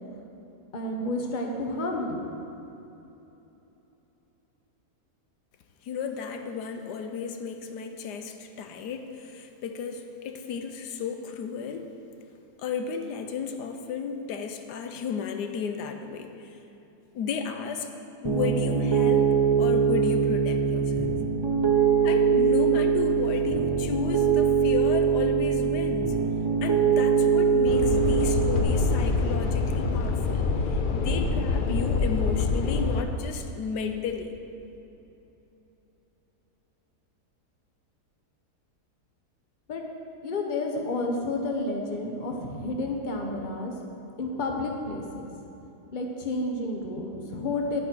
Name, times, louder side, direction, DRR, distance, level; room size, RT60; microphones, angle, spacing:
voice 1, 0.7-2.3 39.7-39.8 40.2-43.7 44.2-45.3 45.9-47.8, left 2 dB, 35° left, 2 dB, 1.0 m, -30 dB
voice 2, 5.8-11.9 12.6-16.6 17.1-17.9 18.2-21.1 22.0-26.2 26.6-34.4, left 6 dB, 90° left, 6 dB, 1.3 m, -33 dB
Piano, 18.2-28.6, right 6 dB, 40° right, 0.4 m, -23 dB
sound 1, 27.6-33.0, left 4 dB, 70° left, 0.4 m, -25 dB
11.0 x 8.5 x 4.5 m, 3.0 s
omnidirectional pair, 1.7 m